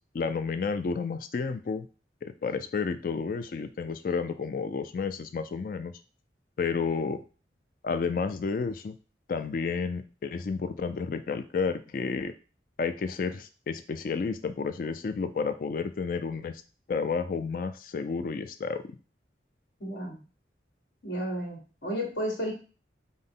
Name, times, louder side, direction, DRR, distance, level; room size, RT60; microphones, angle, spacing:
voice 1, 0.1-1.9 2.2-5.9 6.6-7.2 7.8-8.9 9.3-12.3 12.8-16.6 16.9-18.9, left 5 dB, 50° left, 10 dB, 0.3 m, -31 dB
voice 2, 19.8-20.2 21.0-22.5, equal, 75° left, 0 dB, 1.7 m, -32 dB
5.4 x 2.1 x 3.8 m, 0.35 s
head